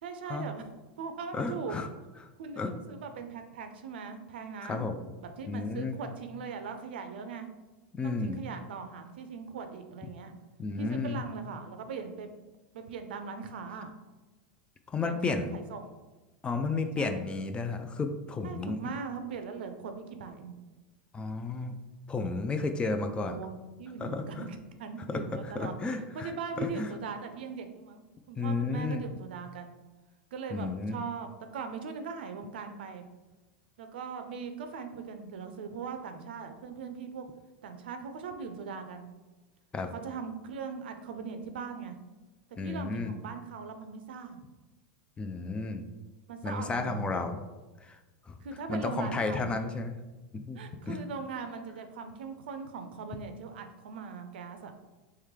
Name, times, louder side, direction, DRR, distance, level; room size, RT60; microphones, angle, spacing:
voice 1, 0.0-0.7 1.0-1.8 2.4-4.9 5.2-7.5 8.0-10.3 10.8-12.3 12.7-13.9 15.0-15.8 17.0-17.3 18.4-20.6 23.1-29.8 30.3-33.1 33.8-37.3 37.6-39.1 39.9-42.0 42.6-44.4 46.3-47.1 48.4-49.5 50.6-54.7, right 5 dB, 75° right, 7 dB, 0.5 m, -40 dB
voice 2, 1.3-1.9 2.6-2.7 4.6-5.0 5.5-6.0 7.9-8.4 10.6-11.2 14.9-15.5 16.4-18.8 21.1-21.8 22.1-23.4 24.0-24.4 25.5-26.9 28.4-29.1 30.5-31.0 39.7-39.9 42.6-43.1 45.2-45.8 46.4-47.4 47.8-48.0 48.3-48.4 48.7-50.0 50.3-51.0, left 3 dB, 20° left, 7 dB, 0.4 m, -32 dB
3.2 x 3.1 x 3.6 m, 1.2 s
hypercardioid pair, 110°, 6 cm